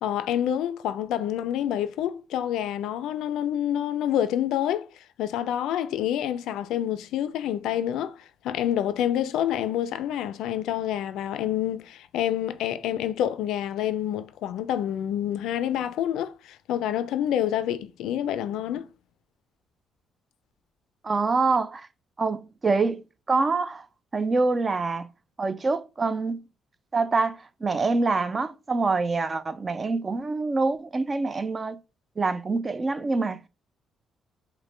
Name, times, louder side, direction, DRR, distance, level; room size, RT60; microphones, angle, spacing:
voice 1, 0.0-4.9 5.2-8.2 8.4-18.9, left 11 dB, 85° left, 0.3 m, -27 dB
voice 2, 21.0-21.9 22.2-23.9 24.1-25.1 25.4-26.4 26.9-31.8 32.2-33.5, right 3 dB, 30° right, 0.4 m, -25 dB
5.0 x 2.1 x 3.2 m
cardioid pair, 90°, 0 cm